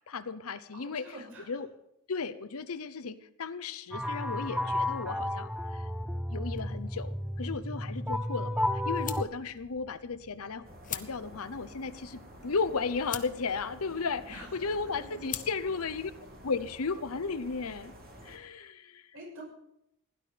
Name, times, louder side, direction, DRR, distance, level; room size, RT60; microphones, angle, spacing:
voice 1, 0.1-1.1 1.5-1.7 2.1-5.8 6.3-16.1 16.4-17.9 18.2-19.1, left 4 dB, 70° left, 13 dB, 0.8 m, -35 dB
voice 2, 0.7-1.6 14.3-15.5 18.5-18.6 19.1-19.4, right 1 dB, 65° right, -1 dB, 6.4 m, -48 dB
sound 1, 3.9-9.2, left 1 dB, 5° right, 0.6 m, -32 dB
sound 2, 6.4-16.8, left 9 dB, 35° left, 0.9 m, -47 dB
sound 3, 10.6-18.4, equal, 45° right, 2.8 m, -51 dB
16.5 x 11.5 x 5.1 m, 0.80 s
head